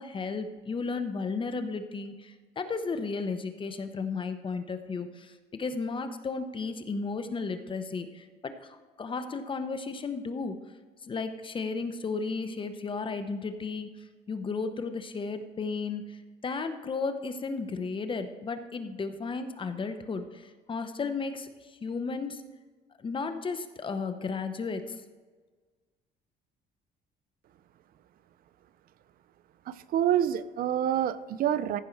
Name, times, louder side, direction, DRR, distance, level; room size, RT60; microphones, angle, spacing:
voice 1, 0.0-10.6 11.0-13.9 14.3-16.2 16.4-21.5 21.8-22.4 23.0-25.0, left 4 dB, 30° left, 9 dB, 0.9 m, -34 dB
voice 2, 29.7-31.8, right 10 dB, 60° right, 15 dB, 0.5 m, -27 dB
15.0 x 5.3 x 4.6 m, 1.4 s
cardioid pair, 110°, 17 cm